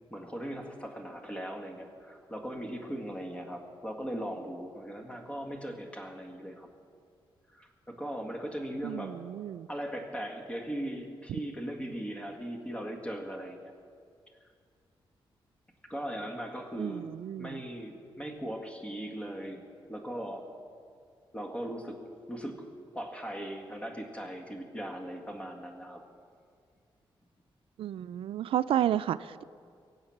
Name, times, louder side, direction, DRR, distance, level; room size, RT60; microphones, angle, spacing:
voice 1, 0.1-6.7 7.5-9.2 9.7-13.7 15.9-19.6 19.9-20.5 21.3-22.0 22.3-22.7 22.9-26.0, equal, 15° left, 2 dB, 1.8 m, -39 dB
voice 2, 8.8-9.7 16.8-17.6 27.8-29.4, right 11 dB, 85° right, 15 dB, 0.3 m, -31 dB
23.5 x 8.0 x 5.9 m, 2.2 s
wide cardioid pair, 115°, 9 cm